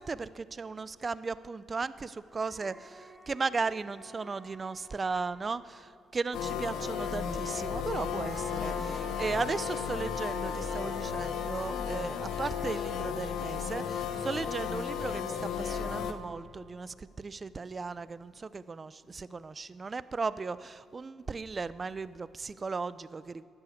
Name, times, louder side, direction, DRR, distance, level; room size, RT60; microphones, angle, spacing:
voice 1, 0.0-23.4, right 4 dB, 35° right, 16 dB, 0.5 m, -36 dB
sound 1, 1.8-1.9 2.3-6.0 7.6-14.9, right 1 dB, 15° right, 1.1 m, -48 dB
sound 2, 6.3-16.1, left 7 dB, 75° left, 0.9 m, -34 dB
12.0 x 9.9 x 8.0 m, 2.5 s
supercardioid pair, 75°, 0 cm